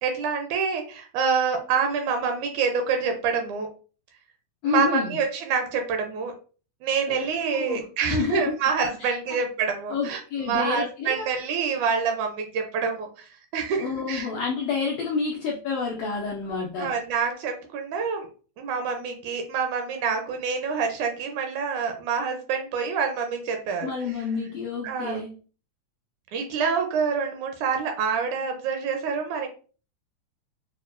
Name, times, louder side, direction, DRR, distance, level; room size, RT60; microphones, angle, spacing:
voice 1, 0.0-3.7 4.6-6.3 6.8-14.3 16.8-18.3 18.6-23.9 24.8-25.2 26.3-29.5, right 6 dB, 75° right, 4 dB, 1.9 m, -27 dB
voice 2, 4.6-5.1 7.1-7.2 7.5-8.5 9.0-9.4 9.9-11.3 13.8-16.9 23.8-25.4, left 5 dB, 90° left, -1 dB, 1.5 m, -29 dB
6.4 x 2.2 x 2.4 m, 0.38 s
omnidirectional pair, 3.7 m